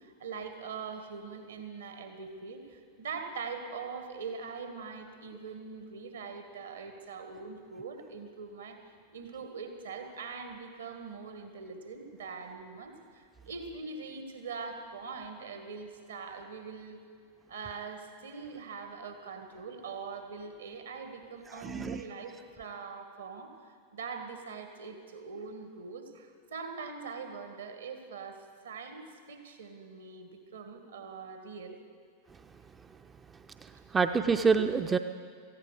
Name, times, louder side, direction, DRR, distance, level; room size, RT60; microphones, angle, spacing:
voice 1, 0.0-8.8 9.1-17.0 17.5-28.4 28.6-31.8, right 5 dB, 65° right, 6 dB, 1.8 m, -42 dB
voice 2, 21.5-22.0 33.6-35.0, right 5 dB, 15° right, 8 dB, 0.5 m, -27 dB
18.5 x 15.0 x 5.0 m, 2.2 s
figure-of-eight pair, 90°, 0 cm